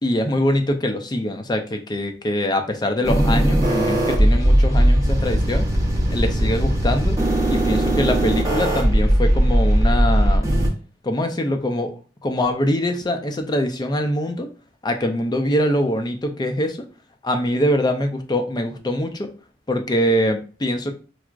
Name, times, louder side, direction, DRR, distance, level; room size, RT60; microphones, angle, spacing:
voice 1, 0.0-5.6 6.1-7.2 7.5-10.5 11.0-11.9 12.2-14.5 14.8-16.8 17.2-19.3 19.7-20.9, left 1 dB, 25° left, 5 dB, 0.4 m, -23 dB
sound 1, 3.0-10.7, right 1 dB, 20° right, 0.7 m, -18 dB
4.5 x 2.0 x 2.4 m, 0.36 s
head